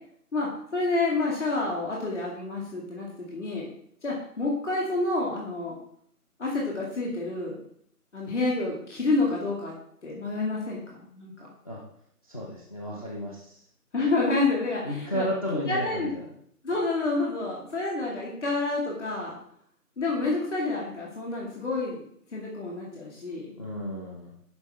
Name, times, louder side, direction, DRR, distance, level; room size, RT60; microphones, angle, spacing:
voice 1, 0.3-3.7 4.0-5.8 6.4-7.5 8.1-9.7 10.0-11.5 13.9-15.3 15.5-16.1 16.6-19.4 20.0-22.0 22.3-23.5, left 3 dB, 45° left, -3 dB, 2.4 m, -28 dB
voice 2, 12.2-13.6 14.8-16.1 23.6-24.3, equal, 25° left, -3 dB, 1.1 m, -33 dB
12.5 x 5.6 x 3.6 m, 0.67 s
figure-of-eight pair, 160°, 47 cm